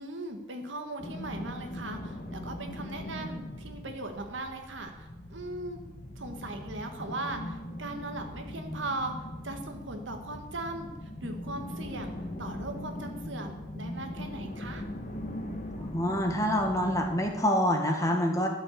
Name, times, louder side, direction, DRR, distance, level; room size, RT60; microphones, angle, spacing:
voice 1, 0.0-5.8 6.2-14.8, right 2 dB, 90° right, 5 dB, 1.6 m, -39 dB
sound 1, 1.0-17.4, left 1 dB, 40° left, 1.4 m, -40 dB
voice 2, 15.8-18.5, equal, 15° left, 2 dB, 1.6 m, -26 dB
12.0 x 5.9 x 8.4 m, 1.1 s
head